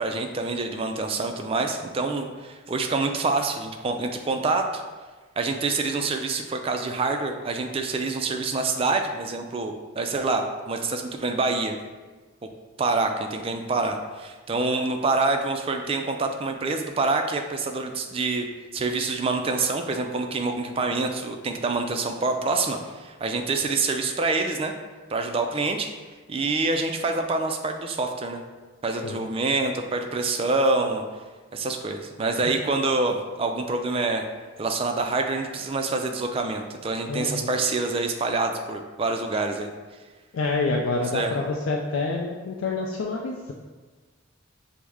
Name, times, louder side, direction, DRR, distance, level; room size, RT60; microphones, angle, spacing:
voice 1, 0.0-4.8 5.4-11.8 12.8-18.5 18.7-24.7 25.1-25.9 26.3-28.4 28.8-31.0 31.5-34.2 34.6-39.7 41.1-41.4, right 3 dB, 25° right, 5 dB, 0.3 m, -26 dB
voice 2, 28.9-29.3 32.4-32.5 37.1-37.5 40.3-43.5, left 3 dB, 75° left, 0 dB, 0.4 m, -28 dB
6.0 x 2.1 x 3.4 m, 1.3 s
head